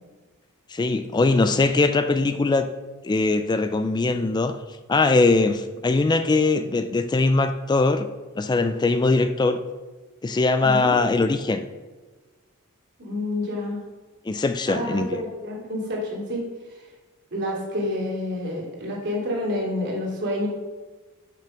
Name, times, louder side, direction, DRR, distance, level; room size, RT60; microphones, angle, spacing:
voice 1, 0.7-2.7 3.0-4.5 4.9-8.1 8.3-9.6 10.2-11.7 14.3-15.1, left 3 dB, 20° left, 9 dB, 0.3 m, -21 dB
voice 2, 10.6-11.0 13.0-13.8 14.7-16.9 17.3-20.5, left 1 dB, 55° right, -3 dB, 3.0 m, -29 dB
6.9 x 5.6 x 6.3 m, 1.3 s
head